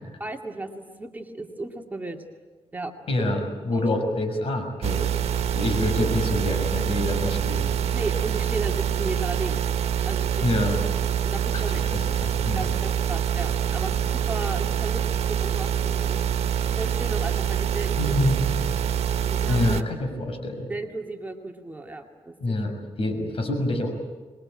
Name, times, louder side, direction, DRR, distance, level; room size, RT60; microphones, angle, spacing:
voice 1, 0.2-2.2 2.7-3.3 3.7-3.8 7.9-9.6 10.0-10.7 11.2-11.8 12.5-16.3 16.8-18.2 19.3-19.8 20.7-22.6, right 2 dB, 15° right, 2 dB, 2.3 m, -35 dB
voice 2, 3.1-5.0 5.5-7.7 10.4-10.8 11.5-12.7 18.0-18.4 19.5-20.7 22.4-23.9, left 1 dB, 65° left, 5 dB, 6.2 m, -26 dB
sound 1, 4.8-19.8, right 9 dB, 85° right, 1.4 m, -25 dB
26.0 x 21.5 x 8.8 m, 1.4 s
cardioid pair, 100°, 10 cm